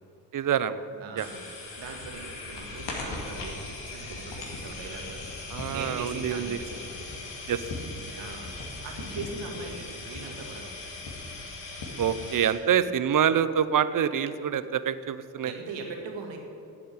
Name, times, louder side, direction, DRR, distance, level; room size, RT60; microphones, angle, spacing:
voice 1, 0.3-0.8 1.1-1.3 5.5-6.6 7.5-7.6 12.0-15.5, right 8 dB, 45° right, 13 dB, 0.7 m, -26 dB
voice 2, 1.0-1.4 1.8-5.2 5.7-7.2 8.2-10.7 15.4-16.4, right 4 dB, 70° right, 2 dB, 2.0 m, -40 dB
sound 1, 1.2-12.5, left 3 dB, 65° left, 2.4 m, -39 dB
8.4 x 7.9 x 9.1 m, 2.6 s
hypercardioid pair, 50°, 45 cm